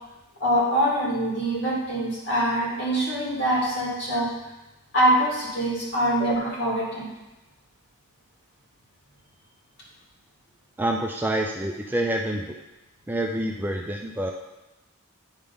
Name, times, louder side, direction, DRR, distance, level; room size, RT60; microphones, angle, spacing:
voice 1, 0.4-4.3 4.9-7.1, right 1 dB, 50° left, -4 dB, 2.2 m, -24 dB
voice 2, 10.8-12.5 13.1-14.3, right 1 dB, 10° right, 1 dB, 0.3 m, -27 dB
9.0 x 3.5 x 5.3 m, 1.0 s
head